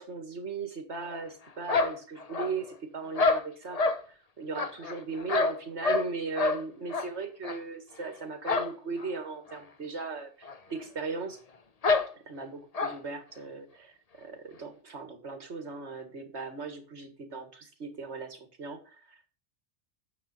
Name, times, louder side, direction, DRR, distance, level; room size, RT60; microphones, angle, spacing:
voice 1, 0.0-11.4 12.1-19.3, right 4 dB, 70° right, 7 dB, 2.1 m, -38 dB
sound 1, 1.7-2.7 3.2-4.0 4.6-6.1 6.4-6.6 6.9-7.1 7.4-7.6 8.4-8.7 9.0-9.1 9.5-9.6 10.4-10.6 10.8-10.9 11.8-12.1 12.7-13.0, left 3 dB, 35° left, 0.8 m, -27 dB
9.1 x 7.2 x 4.3 m, 0.39 s
omnidirectional pair, 1.2 m